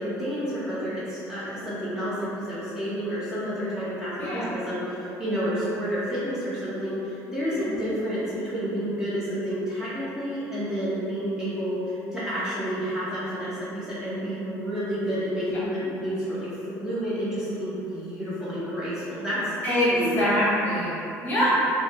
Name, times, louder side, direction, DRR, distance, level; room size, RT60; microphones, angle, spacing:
voice 1, 0.0-19.5 19.9-20.3, equal, 10° right, -11 dB, 0.5 m, -30 dB
voice 2, 4.2-4.5 7.6-7.8 15.5-15.6 19.6-21.6, equal, 30° left, -8 dB, 0.8 m, -24 dB
3.0 x 2.1 x 2.7 m, 3.0 s
cardioid pair, 145°, 7 cm